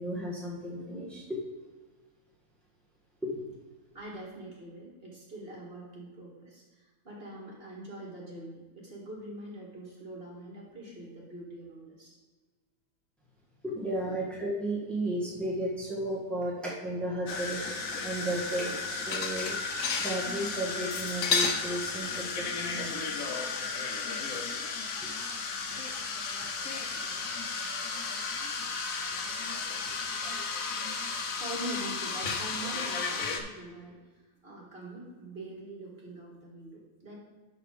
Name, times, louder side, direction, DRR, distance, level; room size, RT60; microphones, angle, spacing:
voice 1, 0.0-1.4 3.2-3.4 13.6-17.8 18.0-19.6 20.0-23.3 25.0-25.1 25.6-25.9, right 1 dB, ahead, -5 dB, 1.7 m, -34 dB
voice 2, 3.9-12.2 14.0-14.2 31.4-37.2, right 1 dB, 45° right, -4 dB, 2.0 m, -43 dB
sound 1, 17.3-33.4, left 4 dB, 90° left, 1.3 m, -33 dB
11.5 x 4.2 x 5.0 m, 1.3 s
omnidirectional pair, 1.4 m